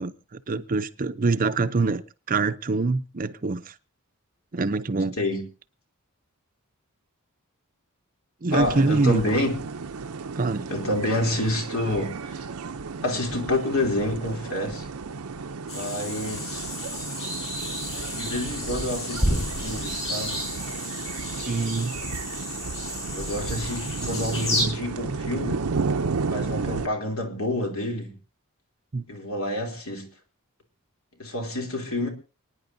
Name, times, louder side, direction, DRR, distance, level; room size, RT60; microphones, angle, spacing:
voice 1, 0.0-2.0 2.3-3.7 4.5-5.2 8.4-9.2 10.4-10.7 21.5-21.9 28.9-29.1, right 3 dB, 40° right, 0.6 m, -25 dB
voice 2, 8.5-9.5 10.7-12.5 13.0-14.9 15.7-16.7 18.1-20.4 23.1-25.7 26.3-28.1 29.1-30.1 31.2-32.1, left 1 dB, 65° left, 3.1 m, -28 dB
sound 1, 8.5-26.9, right 4 dB, 80° right, 0.7 m, -33 dB
sound 2, 15.7-24.6, left 1 dB, 30° left, 7.2 m, -31 dB
29.0 x 9.8 x 2.7 m
head